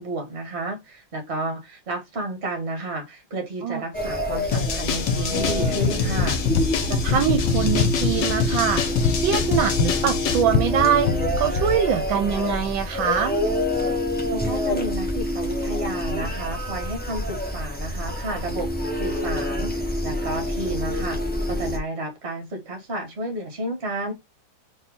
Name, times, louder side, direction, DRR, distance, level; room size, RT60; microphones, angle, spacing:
voice 1, 0.0-6.4 14.3-24.1, right 2 dB, 35° right, 1.6 m, -32 dB
sound 1, 3.9-21.8, left 1 dB, 10° left, 0.5 m, -27 dB
sound 2, 4.5-10.4, left 5 dB, 65° left, 1.5 m, -25 dB
sound 3, 5.4-11.8, left 6 dB, 85° left, 1.4 m, -27 dB
voice 2, 6.9-8.8 9.1-11.1 11.4-13.4, right 8 dB, 75° right, 1.4 m, -23 dB
4.2 x 3.4 x 3.6 m
omnidirectional pair, 2.2 m